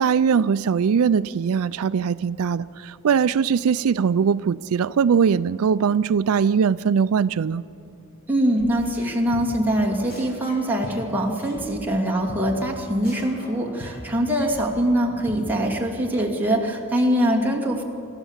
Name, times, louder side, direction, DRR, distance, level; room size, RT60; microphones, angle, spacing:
voice 1, 0.0-7.6, right 6 dB, 80° right, 16 dB, 0.4 m, -21 dB
voice 2, 8.3-17.8, equal, 10° right, -1 dB, 2.4 m, -23 dB
sound 1, 8.6-9.1 9.3-9.7 10.1-11.7 11.9-12.0 12.3-12.4 12.7-12.8 13.0-15.0 15.3-15.4, equal, 45° left, 6.8 m, -39 dB
27.5 x 13.0 x 7.3 m, 2.6 s
head